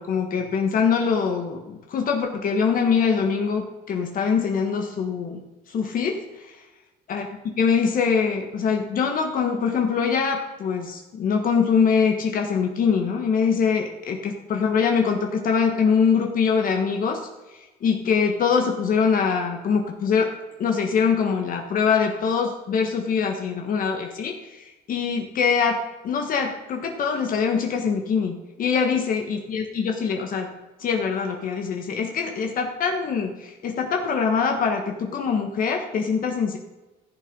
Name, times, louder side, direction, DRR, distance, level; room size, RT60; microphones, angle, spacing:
voice 1, 0.0-5.4 5.7-6.6 7.1-7.3 7.6-17.3 17.8-20.3 20.6-30.5 30.8-36.6, left 6 dB, 55° left, 3 dB, 1.4 m, -23 dB
14.5 x 6.8 x 5.3 m, 1.1 s
cardioid pair, 110°, 17 cm